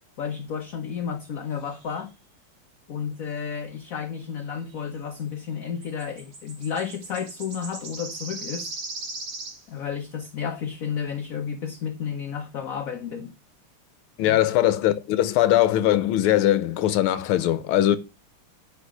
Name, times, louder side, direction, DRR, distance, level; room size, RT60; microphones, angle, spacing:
voice 1, 0.2-2.1 2.9-8.8 9.7-13.3 14.2-14.4, left 7 dB, 50° left, 1.1 m, -32 dB
sound 1, 1.8-2.0 5.8-9.6, right 3 dB, 60° right, 3.2 m, -38 dB
voice 2, 14.2-18.0, left 13 dB, 75° left, 1.7 m, -21 dB
9.9 x 5.1 x 6.4 m
omnidirectional pair, 2.4 m